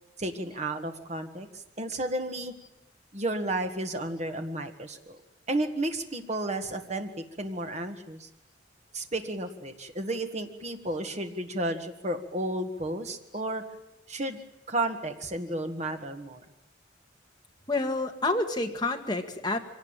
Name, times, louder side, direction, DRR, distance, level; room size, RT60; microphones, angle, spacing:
voice 1, 0.2-2.5 3.1-5.2 5.5-7.1 7.4-8.3 8.9-13.6 14.1-14.4 14.7-16.4, right 1 dB, 35° right, 6 dB, 1.7 m, -32 dB
voice 2, 17.7-19.6, left 2 dB, 20° left, 3 dB, 1.9 m, -28 dB
24.0 x 18.0 x 8.9 m, 0.93 s
head